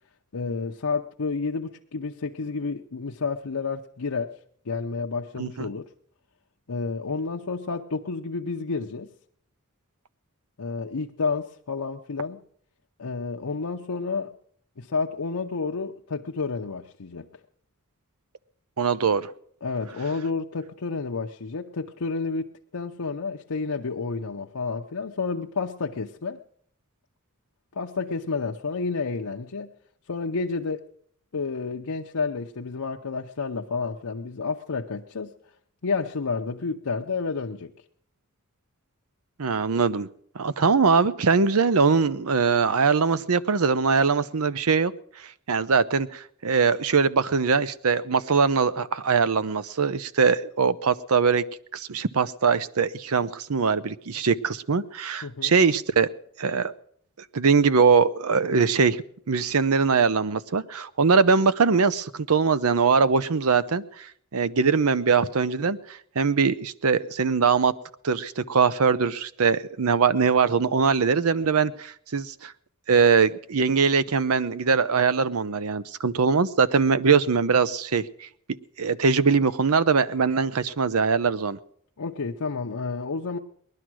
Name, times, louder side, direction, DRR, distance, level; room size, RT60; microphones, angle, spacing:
voice 1, 0.3-4.4 4.6-5.9 6.7-9.1 10.6-12.4 13.0-14.3 14.8-17.3 19.6-26.4 27.7-29.7 30.1-30.9 31.3-35.3 35.8-37.7 55.2-55.5 82.0-83.4, left 4 dB, 80° left, 0.7 m, -30 dB
voice 2, 18.8-19.3 39.4-40.1 40.3-44.9 45.5-51.4 51.7-56.1 56.4-56.7 57.3-64.1 64.3-67.7 68.0-72.5 72.9-78.3 78.8-81.6, right 5 dB, 70° right, 0.7 m, -22 dB
19.5 x 11.5 x 6.2 m
head